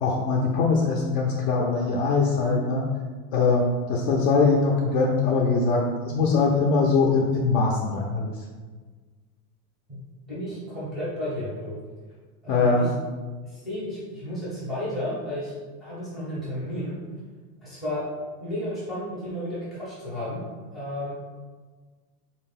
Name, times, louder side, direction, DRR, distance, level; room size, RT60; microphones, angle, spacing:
voice 1, 0.0-2.9 3.3-5.8 6.1-8.3 12.5-12.9, left 4 dB, 60° left, -1 dB, 0.5 m, -22 dB
voice 2, 10.3-11.7 12.4-12.9 13.4-15.5 15.8-17.0 17.6-18.0 18.4-20.4 20.7-21.1, left 1 dB, ahead, -10 dB, 0.5 m, -32 dB
3.6 x 2.4 x 3.6 m, 1.4 s
supercardioid pair, 175°, 45 cm